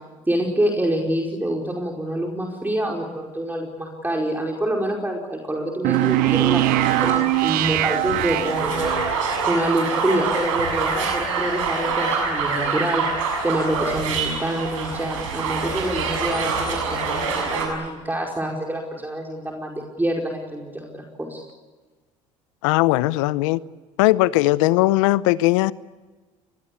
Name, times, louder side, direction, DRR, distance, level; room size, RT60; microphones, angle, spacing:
voice 1, 0.3-8.9 9.4-13.0 13.4-21.4, right 1 dB, 10° right, 0 dB, 5.0 m, -26 dB
sound 1, 5.8-9.1, right 19 dB, 65° right, 0.7 m, -21 dB
sound 2, 5.9-17.7, right 4 dB, 90° right, 7.0 m, -26 dB
voice 2, 22.6-23.6 24.0-25.7, left 18 dB, 80° left, 18 dB, 0.8 m, -18 dB
25.0 x 21.0 x 8.6 m, 1.3 s
hypercardioid pair, 65°, 16 cm